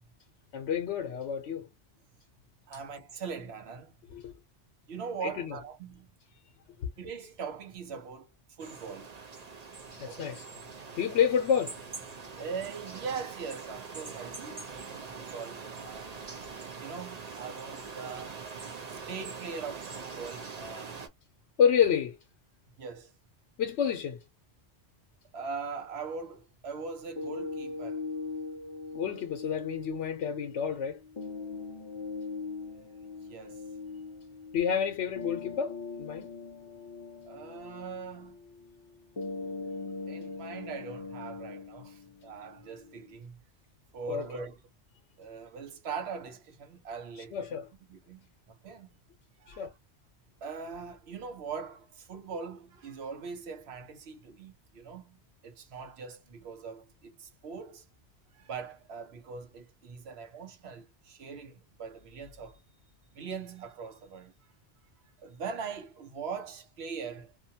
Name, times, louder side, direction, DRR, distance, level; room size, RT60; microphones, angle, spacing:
voice 1, 0.5-1.7 4.1-4.3 5.2-5.6 6.8-6.9 9.9-10.5 10.9-11.9 21.6-22.2 23.6-24.2 28.9-31.0 34.5-36.3 44.1-44.4 47.3-47.7 49.6-49.7, left 8 dB, 75° left, 0.9 m, -29 dB
voice 2, 2.7-3.9 4.9-6.1 7.0-8.3 8.6-9.1 10.0-10.3 12.4-16.1 16.8-18.4 18.9-21.1 22.8-23.1 25.3-28.0 33.3-33.6 37.2-38.4 40.1-43.4 43.9-44.5 45.2-47.6 47.9-48.3 48.6-48.9 49.4-49.7 50.4-55.2 55.4-57.8 58.3-62.6 63.1-64.3 65.2-67.3, right 5 dB, 65° right, 1.0 m, -41 dB
sound 1, 8.6-21.1, right 5 dB, 40° right, 0.7 m, -43 dB
sound 2, 27.2-43.2, left 4 dB, 50° left, 0.3 m, -41 dB
2.6 x 2.1 x 2.7 m
omnidirectional pair, 1.2 m